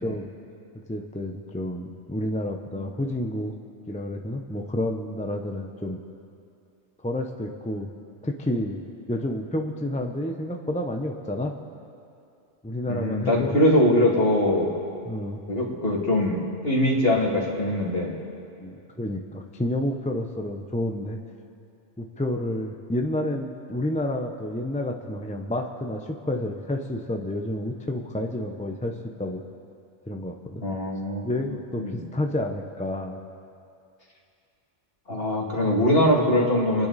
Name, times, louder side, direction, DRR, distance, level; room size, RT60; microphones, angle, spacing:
voice 1, 0.9-3.5 3.9-6.0 7.0-7.9 8.2-8.8 9.1-11.5 12.6-13.5 14.5-14.8 15.0-15.4 18.6-21.2 22.0-28.9 29.2-29.4 30.1-30.6 31.2-33.2, left 1 dB, 10° left, 3 dB, 0.6 m, -30 dB
voice 2, 12.9-14.7 15.5-18.2 30.6-31.3 31.8-32.0 35.1-36.9, left 1 dB, 55° left, -2 dB, 2.6 m, -22 dB
30.0 x 10.5 x 4.1 m, 2.5 s
omnidirectional pair, 1.2 m